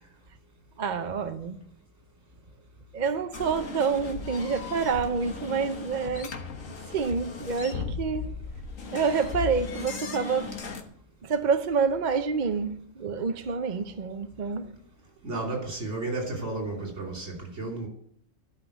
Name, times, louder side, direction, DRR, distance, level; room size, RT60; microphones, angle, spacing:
voice 1, 0.8-1.7 2.9-6.3 6.6-8.3 8.9-10.6 11.2-14.7, right 5 dB, 45° right, 0.7 m, -28 dB
sound 1, 3.3-10.8, left 5 dB, 80° left, 1.8 m, -37 dB
voice 2, 15.2-17.9, right 2 dB, 65° right, 3.4 m, -33 dB
11.5 x 5.8 x 9.2 m
omnidirectional pair, 1.4 m